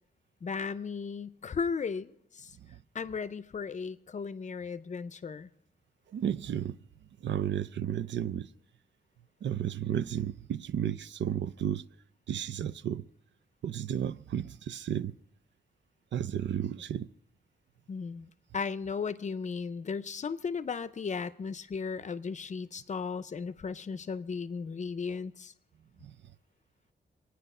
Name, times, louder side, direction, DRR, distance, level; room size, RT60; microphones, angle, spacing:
voice 1, 0.4-2.6 2.9-5.5 17.9-25.5, left 5 dB, 40° left, 0.5 m, -36 dB
voice 2, 6.1-6.8 7.2-8.5 9.4-11.8 12.3-13.1 13.6-15.1 16.1-17.1 26.0-26.1, right 9 dB, 85° right, 0.5 m, -33 dB
25.0 x 9.6 x 5.5 m
wide cardioid pair, 175°, 18 cm